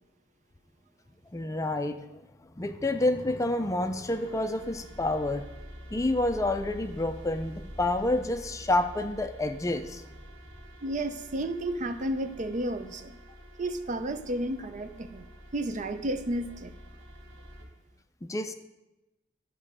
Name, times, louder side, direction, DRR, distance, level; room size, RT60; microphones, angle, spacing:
voice 1, 1.3-2.3 2.6-5.4 5.9-10.0 18.2-18.5, left 2 dB, 15° left, 8 dB, 0.4 m, -28 dB
sound 1, 4.0-17.6, equal, 90° right, 3.6 m, -47 dB
voice 2, 10.8-13.2 13.6-15.3 15.5-16.7, right 1 dB, 40° right, 9 dB, 0.5 m, -32 dB
12.0 x 5.5 x 4.9 m, 0.98 s
head